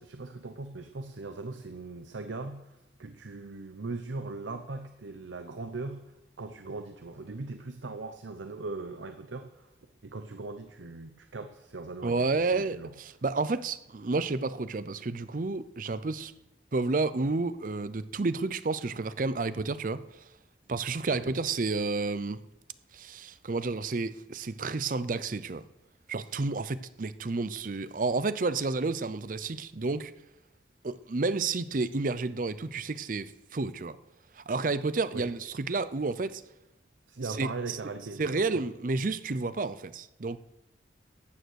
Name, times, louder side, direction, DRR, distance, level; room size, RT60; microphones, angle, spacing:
voice 1, 0.0-6.0 6.4-9.7 10.0-12.9 21.1-21.3 35.1-35.3 37.1-38.7, right 3 dB, 85° right, 0.8 m, -39 dB
voice 2, 12.0-12.8 13.2-16.3 16.7-20.0 20.7-22.4 22.9-25.6 26.1-30.1 30.8-34.0 34.4-36.4 37.4-37.8 38.2-40.4, right 3 dB, 45° right, 0.5 m, -30 dB
14.5 x 9.1 x 6.4 m
head